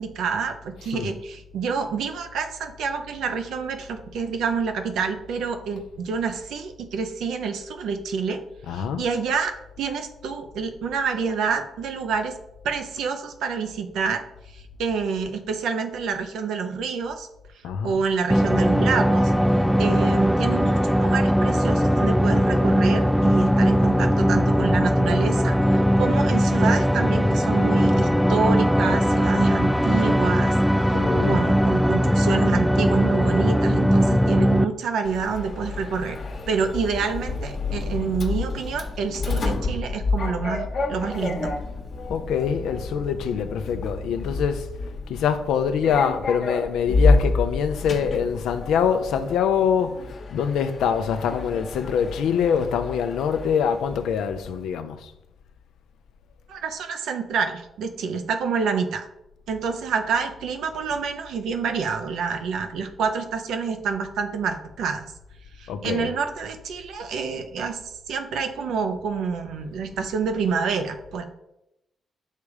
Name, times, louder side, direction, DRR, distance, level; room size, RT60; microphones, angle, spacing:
voice 1, 0.0-8.4 8.7-12.3 12.6-14.2 14.5-17.3 17.8-19.3 19.8-36.2 36.5-41.5 56.5-59.1 59.5-65.0 65.6-67.8 68.1-71.2, right 5 dB, 75° right, 0.7 m, -28 dB
voice 2, 0.8-1.1 8.6-9.1 17.6-18.0 30.7-31.6 42.1-44.7 45.1-55.1 65.7-66.1 70.0-70.1, left 7 dB, 75° left, 0.5 m, -24 dB
sound 1, 18.3-34.6, equal, ahead, 0.4 m, -20 dB
Sliding door, 35.0-54.6, left 3 dB, 60° left, 1.1 m, -29 dB
6.6 x 3.5 x 4.9 m
hypercardioid pair, 45°, 0 cm